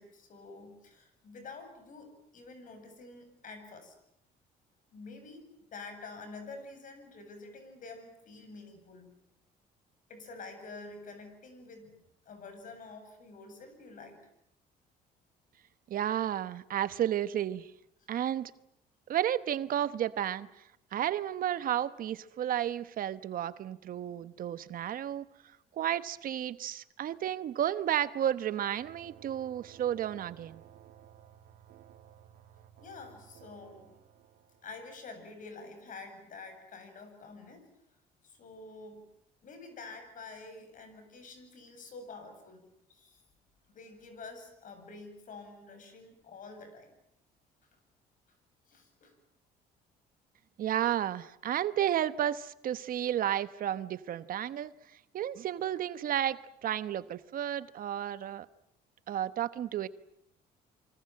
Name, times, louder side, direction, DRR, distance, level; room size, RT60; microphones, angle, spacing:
voice 1, 0.0-3.9 4.9-9.1 10.1-11.9 12.3-14.2 32.8-33.9 34.6-37.7 38.2-39.0 39.4-43.2 43.7-46.9 48.7-49.1, left 3 dB, 50° left, 7 dB, 7.9 m, -48 dB
voice 2, 15.9-17.7 18.1-18.5 19.1-20.6 20.9-25.2 25.7-30.6 50.6-54.7 55.1-58.5 59.1-59.9, right 11 dB, 55° right, 14 dB, 1.1 m, -32 dB
sound 1, 28.8-36.0, right 10 dB, 85° right, 2.7 m, -57 dB
27.5 x 25.0 x 7.7 m, 0.77 s
cardioid pair, 110°, 17 cm